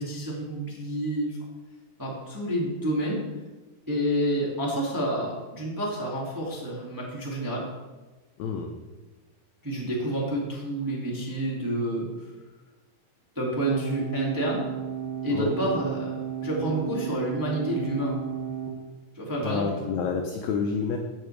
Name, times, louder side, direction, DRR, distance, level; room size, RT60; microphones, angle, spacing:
voice 1, 0.0-1.4 2.0-3.2 3.9-7.6 9.6-12.3 13.3-14.6 15.2-18.2 19.1-20.0, right 1 dB, 10° right, -5 dB, 1.1 m, -29 dB
voice 2, 8.4-8.7 15.3-15.6 19.4-21.0, left 6 dB, 85° left, 4 dB, 1.6 m, -29 dB
sound 1, 13.6-18.7, right 8 dB, 55° right, 2.3 m, -34 dB
15.5 x 5.8 x 3.3 m, 1.2 s
omnidirectional pair, 4.1 m